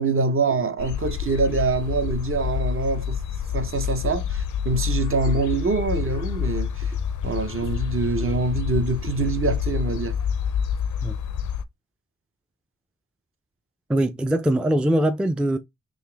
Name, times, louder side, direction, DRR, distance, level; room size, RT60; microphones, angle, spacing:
voice 1, 0.0-3.2 3.5-6.9 7.2-10.2, right 3 dB, 45° right, 0.7 m, -25 dB
sound 1, 0.8-11.6, left 7 dB, 70° left, 0.5 m, -28 dB
voice 2, 13.9-15.6, right 1 dB, 5° right, 0.3 m, -22 dB
3.8 x 2.5 x 3.3 m
wide cardioid pair, 90°, 31 cm